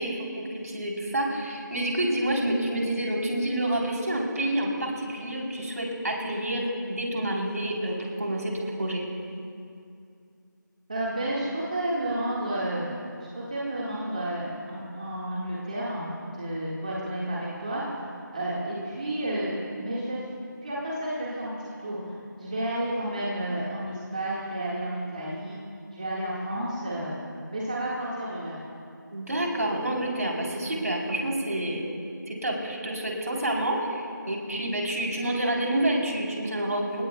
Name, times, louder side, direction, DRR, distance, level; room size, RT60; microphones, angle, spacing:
voice 1, 0.0-9.0 29.1-31.8 32.3-37.0, right 1 dB, 50° right, -1 dB, 3.5 m, -28 dB
voice 2, 10.9-12.8 13.3-16.1 16.3-17.8 18.3-19.5 19.8-20.2 20.6-25.6 25.9-27.1 27.5-28.6, right 1 dB, 25° right, -6 dB, 1.7 m, -31 dB
28.0 x 17.0 x 2.3 m, 2.4 s
figure-of-eight pair, 175°, 11 cm